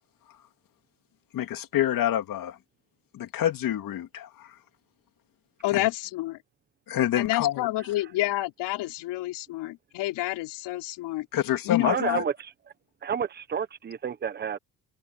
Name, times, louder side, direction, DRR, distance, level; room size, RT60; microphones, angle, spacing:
voice 1, 1.3-2.6 3.1-4.5 5.7-5.8 6.9-7.7 11.3-11.9, left 12 dB, 50° left, 2.8 m, -27 dB
voice 2, 5.6-6.4 7.2-11.3 11.6-12.2, left 17 dB, 75° left, 3.7 m, -29 dB
voice 3, 11.8-12.3 13.0-14.6, right 7 dB, 25° right, 1.1 m, -29 dB
cardioid pair, 140°, 41 cm